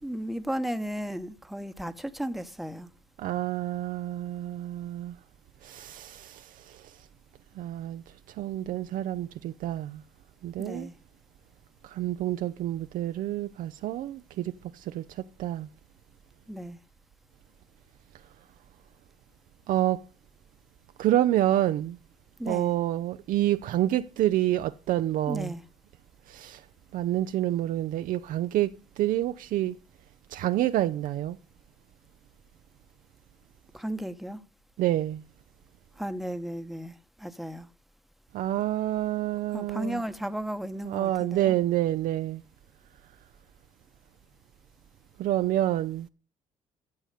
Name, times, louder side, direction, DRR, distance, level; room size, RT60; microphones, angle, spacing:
voice 1, 0.0-2.9 10.6-10.9 16.5-16.8 22.4-22.7 25.3-25.6 33.7-34.4 36.0-37.7 39.5-41.6, equal, ahead, 1.0 m, -34 dB
voice 2, 3.2-5.1 5.6-6.9 7.6-8.0 8.4-10.0 10.4-10.9 11.8-15.7 19.7-20.0 21.0-22.0 22.5-25.5 26.3-26.6 26.9-29.8 30.3-31.4 34.8-35.2 38.3-40.0 40.8-42.4 45.2-46.1, right 13 dB, 65° right, 0.5 m, -28 dB
14.0 x 6.3 x 5.0 m
supercardioid pair, 65°, 15 cm